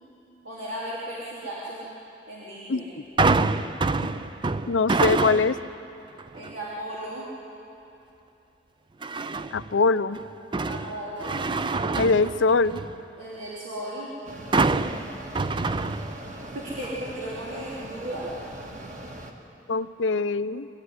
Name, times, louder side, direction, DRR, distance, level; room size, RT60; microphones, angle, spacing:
voice 1, 0.4-1.9 2.3-2.9 6.3-7.3 10.7-11.4 13.2-14.1 16.4-18.3, right 1 dB, 85° right, -8 dB, 3.6 m, -35 dB
sound 1, 3.2-5.7 6.2-6.6 9.0-9.7 10.1-13.0 14.5-16.5 16.8-16.9, right 3 dB, 25° right, 0.4 m, -26 dB
voice 2, 4.7-5.6 9.5-10.2 12.0-12.8 19.7-20.7, left 4 dB, 75° left, 13 dB, 0.6 m, -22 dB
Mechanisms, 14.2-19.3, right 1 dB, 40° right, 1.8 m, -41 dB
23.0 x 14.0 x 9.6 m, 2.9 s
head